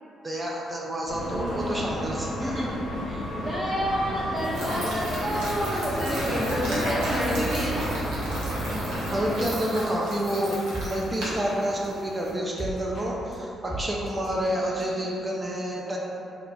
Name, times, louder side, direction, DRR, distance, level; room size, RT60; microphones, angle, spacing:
voice 1, 0.2-2.5 9.1-16.0, right 1 dB, 30° right, -3 dB, 0.4 m, -29 dB
sound 1, 1.1-9.4, equal, 85° left, 0.7 m, -31 dB
voice 2, 3.0-7.8 14.8-14.9, equal, 60° right, -11 dB, 1.0 m, -29 dB
sound 2, 4.4-12.3, equal, 85° right, 0.7 m, -36 dB
sound 3, 10.7-15.5, right 1 dB, 45° left, 0.8 m, -45 dB
3.3 x 2.4 x 2.2 m, 2.7 s
supercardioid pair, 55°, 0 cm